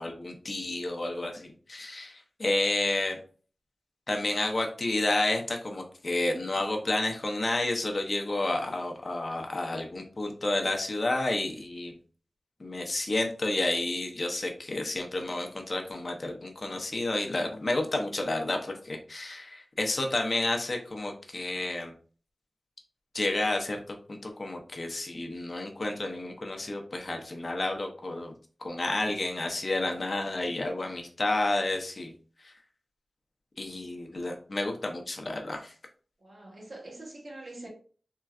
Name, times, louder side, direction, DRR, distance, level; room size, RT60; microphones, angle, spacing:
voice 1, 0.0-3.2 4.1-11.9 12.6-21.9 23.1-28.3 28.6-32.1 32.4-32.5 33.6-35.7, left 2 dB, 50° left, 0.7 m, -30 dB
voice 2, 36.2-37.7, right 2 dB, 65° right, 1.1 m, -44 dB
3.8 x 2.2 x 2.4 m
wide cardioid pair, 70°, 0 cm